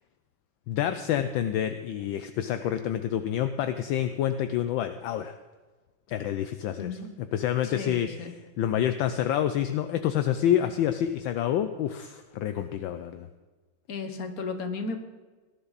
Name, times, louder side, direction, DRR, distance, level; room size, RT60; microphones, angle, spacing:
voice 1, 0.7-5.4 6.1-7.0 7.3-8.1 8.6-13.3, left 10 dB, 75° left, 10 dB, 1.3 m, -28 dB
voice 2, 6.8-7.1 7.6-8.3 13.9-15.0, left 4 dB, 50° left, 7 dB, 1.6 m, -34 dB
19.0 x 11.5 x 4.1 m, 1.3 s
omnidirectional pair, 2.3 m